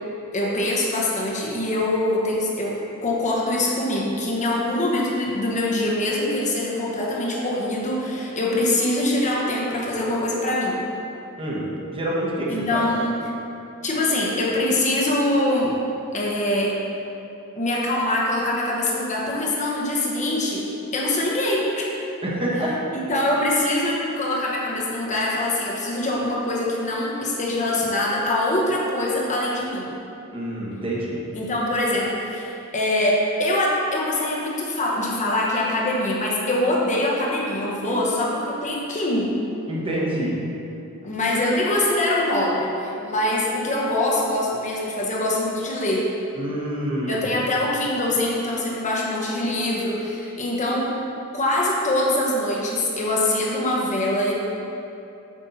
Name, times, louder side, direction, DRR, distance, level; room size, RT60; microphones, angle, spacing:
voice 1, 0.3-10.8 12.5-13.2 13.8-15.8 16.1-16.8 17.6-20.7 20.9-21.9 22.9-29.9 31.3-39.3 41.0-46.1 47.1-51.0 51.3-54.3, left 1 dB, 35° left, -3 dB, 1.0 m, -23 dB
voice 2, 11.4-12.8 22.2-22.7 30.3-31.2 37.9-38.0 39.7-40.3 46.4-47.2, right 1 dB, 25° right, -5 dB, 1.2 m, -27 dB
8.3 x 5.3 x 4.1 m, 2.8 s
head